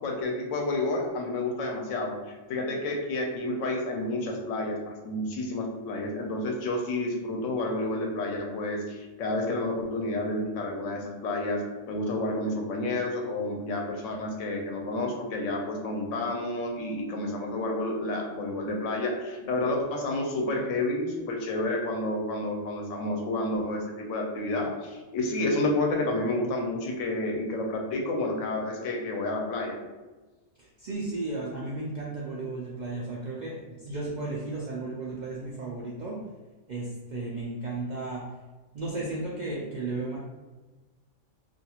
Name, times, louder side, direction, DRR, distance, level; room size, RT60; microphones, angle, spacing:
voice 1, 0.0-29.8, left 2 dB, 85° left, 1 dB, 0.9 m, -30 dB
voice 2, 30.6-36.2 36.7-38.2 38.7-40.2, right 2 dB, 70° right, -5 dB, 0.4 m, -34 dB
2.4 x 2.3 x 2.8 m, 1.2 s
omnidirectional pair, 1.3 m